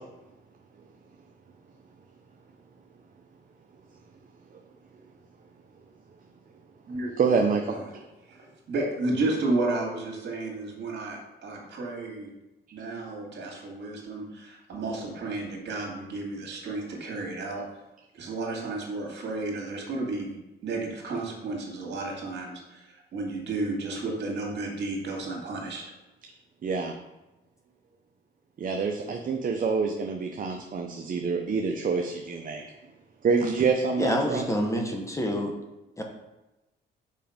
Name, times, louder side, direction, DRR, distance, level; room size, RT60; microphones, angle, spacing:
voice 1, 7.2-7.6 26.6-26.9 28.6-32.6 33.2-34.5, right 5 dB, 45° right, 3 dB, 0.7 m, -26 dB
voice 2, 8.3-12.3 12.7-17.6 18.1-20.4 20.6-25.8, right 2 dB, 60° right, 0 dB, 2.2 m, -32 dB
voice 3, 34.0-35.5 36.0-36.1, equal, 15° left, 2 dB, 1.1 m, -27 dB
5.6 x 5.1 x 5.1 m, 1.0 s
cardioid pair, 90°, 20 cm